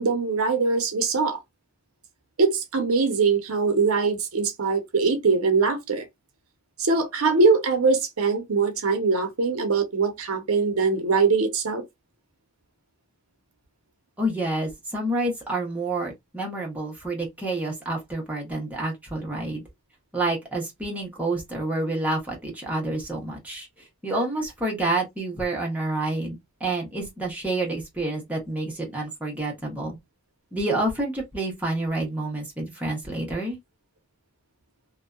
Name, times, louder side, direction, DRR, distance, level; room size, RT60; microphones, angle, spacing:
voice 1, 0.0-1.4 2.4-6.1 6.8-11.8, right 4 dB, 70° right, 0.7 m, -22 dB
voice 2, 14.2-19.6 20.1-23.7 24.0-30.0 30.5-33.6, right 2 dB, 5° right, 0.8 m, -28 dB
2.6 x 2.1 x 2.3 m
head